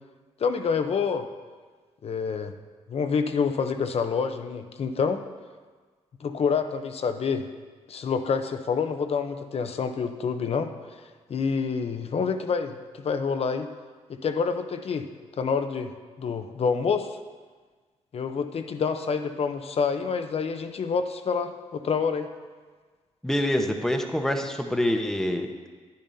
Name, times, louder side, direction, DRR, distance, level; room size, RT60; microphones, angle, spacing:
voice 1, 0.4-1.3 2.0-2.5 2.9-5.2 6.2-7.5 7.9-11.0 11.3-13.7 14.1-15.0 15.4-15.9 16.2-17.2 18.1-22.3, left 5 dB, 55° left, 7 dB, 0.8 m, -27 dB
voice 2, 23.2-25.8, left 1 dB, 5° left, 4 dB, 1.0 m, -26 dB
10.5 x 10.0 x 2.8 m, 1.4 s
cardioid pair, 70°, 12 cm